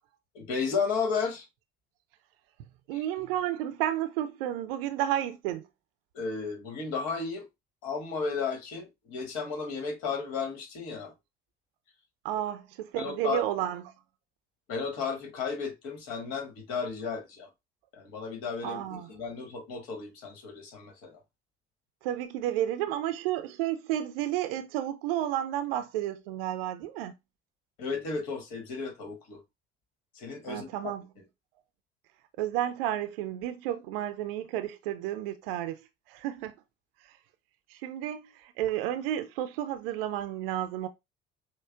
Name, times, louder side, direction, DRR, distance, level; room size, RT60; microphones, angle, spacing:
voice 1, 0.3-1.5 2.9-3.0 6.1-7.5 7.8-11.1 12.9-13.5 14.7-17.5 17.9-21.2 27.8-29.4 30.1-30.7, left 5 dB, 55° left, 1.4 m, -34 dB
voice 2, 2.9-5.7 12.2-13.8 18.6-19.1 22.0-27.2 30.5-31.0 32.4-35.8 36.1-36.5 37.0-37.2 37.7-40.9, right 12 dB, 65° right, 0.5 m, -31 dB
6.1 x 2.1 x 2.3 m
figure-of-eight pair, 60°, 32 cm